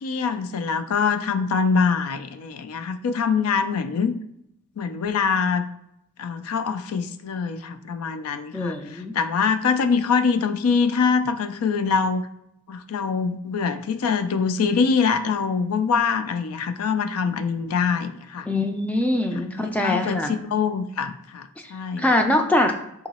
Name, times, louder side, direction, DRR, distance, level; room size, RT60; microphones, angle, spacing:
voice 1, 0.0-4.1 4.8-5.7 6.2-12.2 12.7-18.5 19.8-20.2 20.5-22.0, left 5 dB, 80° left, 10 dB, 0.4 m, -24 dB
voice 2, 8.5-9.2 18.5-20.3 22.0-22.7, left 1 dB, 5° left, 5 dB, 0.3 m, -23 dB
3.8 x 2.9 x 4.1 m, 0.78 s
head